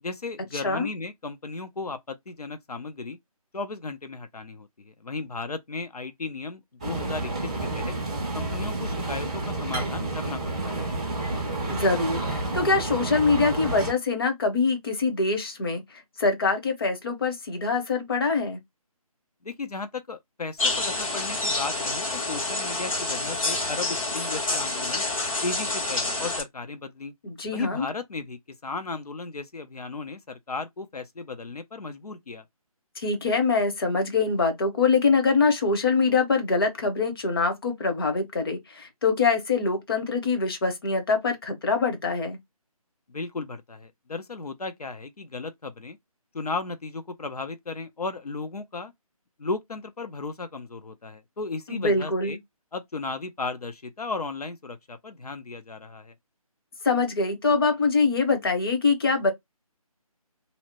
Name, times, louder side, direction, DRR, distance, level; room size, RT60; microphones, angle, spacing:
voice 1, 0.0-3.2 3.5-7.9 8.3-10.8 19.4-25.0 25.4-27.1 27.5-32.4 43.1-46.0 46.3-48.9 49.4-52.4 52.7-56.1, left 3 dB, 85° left, 0.5 m, -35 dB
sound 1, 6.8-13.9, right 2 dB, 10° right, 0.4 m, -30 dB
voice 2, 11.7-15.8 16.2-18.6 27.2-27.8 33.0-42.4 51.7-52.4 56.8-59.3, left 4 dB, 40° left, 0.7 m, -24 dB
sound 2, 20.6-26.4, left 2 dB, 60° left, 1.3 m, -28 dB
2.7 x 2.0 x 2.9 m
figure-of-eight pair, 150°, 19 cm